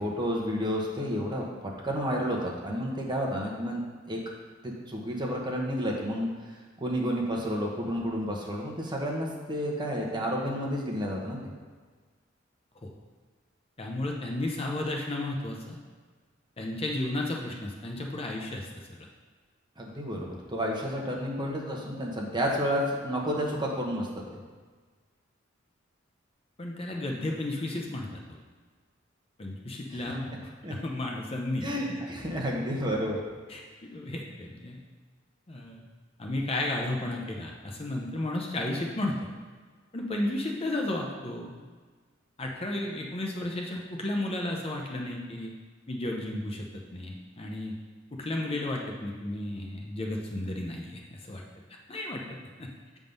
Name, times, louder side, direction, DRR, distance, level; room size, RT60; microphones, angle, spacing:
voice 1, 0.0-4.2 4.6-11.4 19.8-24.1 29.9-30.0 30.6-30.8 31.6-33.2, equal, 25° right, -1 dB, 1.0 m, -31 dB
voice 2, 13.8-15.8 16.6-19.0 26.6-28.4 29.4-31.7 33.5-33.6 33.9-34.8 35.5-35.8 36.2-39.2 39.9-41.6 42.4-45.5 45.9-46.7 46.9-47.7 48.1-51.4 51.9-52.2 52.6-52.7, left 1 dB, 30° left, 0 dB, 0.7 m, -33 dB
7.3 x 3.6 x 5.3 m, 1.5 s
head